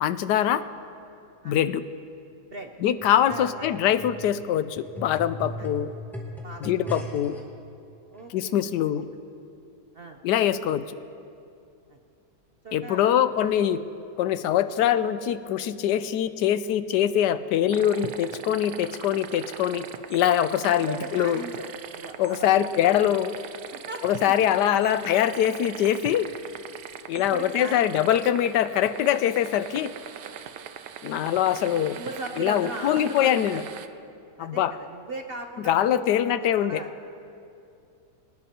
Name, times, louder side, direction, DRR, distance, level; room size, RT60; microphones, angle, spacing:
voice 1, 0.0-0.6 1.4-1.8 2.8-5.9 6.6-7.3 8.3-9.1 10.2-10.8 12.7-13.8 14.2-21.4 22.2-23.3 24.0-26.3 27.1-29.9 31.0-32.0 32.4-33.6 34.4-34.7 35.7-36.8, left 10 dB, 80° left, 13 dB, 1.2 m, -23 dB
sound 1, 3.0-7.4 8.2-8.3, equal, ahead, 2.0 m, -38 dB
voice 2, 3.3-3.9 5.6-5.7 6.4-6.9 7.2-7.4 8.1-8.6 9.9-10.2 11.9-12.0 12.6-13.1 20.8-21.7 21.9-23.1 23.7-25.1 27.1-28.0 31.8-33.6 34.4-36.9, right 3 dB, 55° right, 4 dB, 0.6 m, -39 dB
sound 2, 17.7-33.9, right 9 dB, 75° right, 1.2 m, -41 dB
24.0 x 18.5 x 2.9 m, 2.5 s
omnidirectional pair, 1.8 m